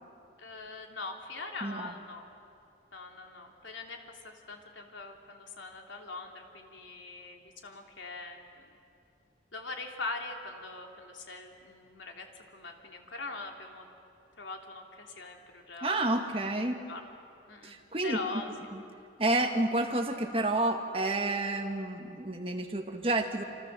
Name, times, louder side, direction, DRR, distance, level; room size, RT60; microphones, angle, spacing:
voice 1, 0.4-2.3 2.9-8.6 9.5-13.9 14.4-16.3 16.9-17.1 17.5-17.7 18.0-18.6, left 3 dB, 90° left, 2 dB, 3.3 m, -42 dB
voice 2, 1.6-1.9 15.8-16.8 17.6-18.2 18.7-18.8 19.2-23.4, right 2 dB, 30° right, 4 dB, 1.8 m, -30 dB
28.0 x 27.0 x 7.6 m, 2.6 s
head